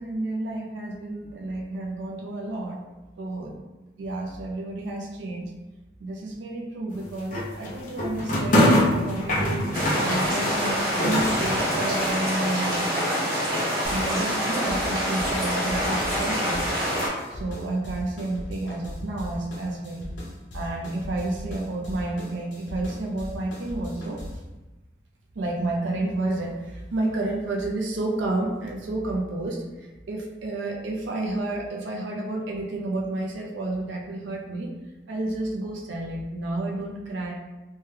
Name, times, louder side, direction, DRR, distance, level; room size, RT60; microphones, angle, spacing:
voice 1, 0.0-2.9 3.2-3.6 4.0-5.5 6.0-9.7 10.0-12.9 13.9-16.6 17.3-20.1 20.5-24.2 25.3-34.7 35.1-37.3, right 2 dB, 75° right, -1 dB, 0.4 m, -30 dB
sound 1, 6.9-12.2, left 1 dB, 45° left, 0.5 m, -24 dB
sound 2, 9.7-17.1, equal, 50° right, 1.0 m, -26 dB
sound 3, 13.8-24.5, left 1 dB, 75° left, 0.8 m, -38 dB
3.0 x 2.2 x 3.2 m, 1.1 s
head